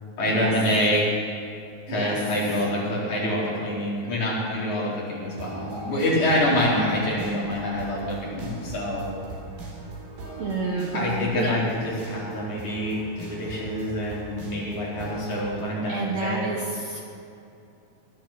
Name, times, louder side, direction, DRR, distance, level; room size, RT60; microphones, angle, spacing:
voice 1, 0.2-1.2 1.9-9.1 10.9-16.5, left 1 dB, 50° left, -7 dB, 5.5 m, -26 dB
voice 2, 1.9-2.2 10.4-11.5 15.9-17.0, right 3 dB, 60° right, -1 dB, 2.2 m, -29 dB
sound 1, 5.2-15.6, right 2 dB, 80° right, 5.5 m, -40 dB
18.0 x 12.0 x 6.0 m, 2.6 s
omnidirectional pair, 4.3 m